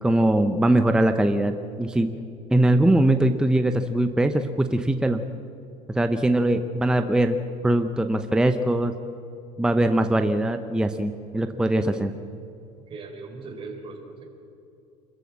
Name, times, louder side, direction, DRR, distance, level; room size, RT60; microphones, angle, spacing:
voice 1, 0.0-2.2 2.5-5.3 5.9-7.4 7.6-8.9 9.6-12.1, right 1 dB, 5° right, 7 dB, 0.7 m, -21 dB
voice 2, 11.9-12.2 12.9-14.2, right 3 dB, 35° right, 2 dB, 4.4 m, -40 dB
27.0 x 14.5 x 7.4 m, 2.7 s
cardioid pair, 135°, 16 cm